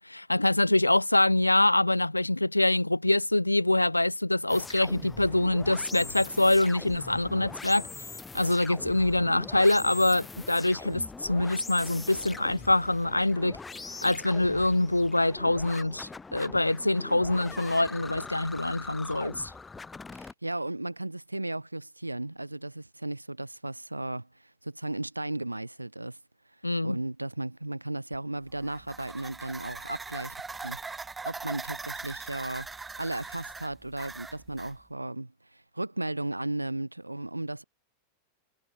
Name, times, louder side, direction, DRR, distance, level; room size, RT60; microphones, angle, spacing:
voice 1, 0.0-8.1 8.3-13.6 14.0-19.5 26.6-27.0, left 2 dB, 85° left, 1.3 m, -25 dB
sound 1, 4.5-20.3, left 4 dB, 10° left, 1.3 m, -42 dB
voice 2, 20.1-24.3 24.6-26.2 26.8-30.4 30.6-32.7 33.0-37.6, right 2 dB, 85° right, 2.4 m, -35 dB
sound 2, 28.5-34.8, right 4 dB, 10° right, 1.4 m, -41 dB
figure-of-eight pair, 90°, 0 cm